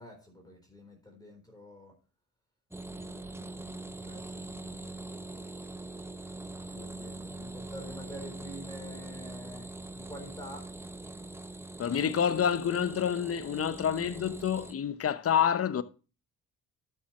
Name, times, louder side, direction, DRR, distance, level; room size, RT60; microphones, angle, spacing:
voice 1, 0.0-1.9 2.9-5.0 6.7-9.7 9.9-10.7, equal, 10° left, 3.8 m, -47 dB
sound 1, 2.7-14.7, right 2 dB, 5° right, 0.7 m, -43 dB
voice 2, 11.8-15.8, left 8 dB, 35° left, 0.8 m, -28 dB
12.5 x 6.7 x 3.1 m
supercardioid pair, 60°, 39 cm